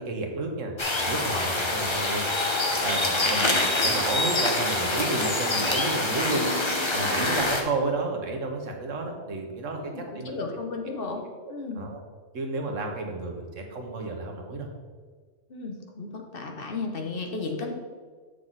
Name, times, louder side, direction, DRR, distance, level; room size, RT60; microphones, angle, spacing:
voice 1, 0.0-2.2 2.8-6.5 6.9-10.4 11.2-12.0 12.3-14.7, right 3 dB, 85° right, 3 dB, 1.5 m, -32 dB
sound 1, 0.8-7.6, left 2 dB, 25° left, 0.8 m, -25 dB
voice 2, 9.8-11.2 11.5-11.9 15.5-17.7, left 3 dB, 50° left, 2 dB, 1.1 m, -34 dB
7.5 x 6.7 x 4.0 m, 1.6 s
omnidirectional pair, 1.3 m